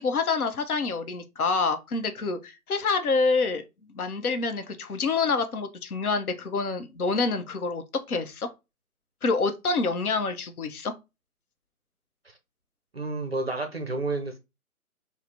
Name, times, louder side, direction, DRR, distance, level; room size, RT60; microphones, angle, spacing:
voice 1, 0.0-3.6 3.9-8.5 9.2-10.9, left 4 dB, 75° left, 0.7 m, -27 dB
voice 2, 12.9-14.4, right 2 dB, 45° right, 0.4 m, -30 dB
3.2 x 2.0 x 2.6 m
figure-of-eight pair, 145°, 44 cm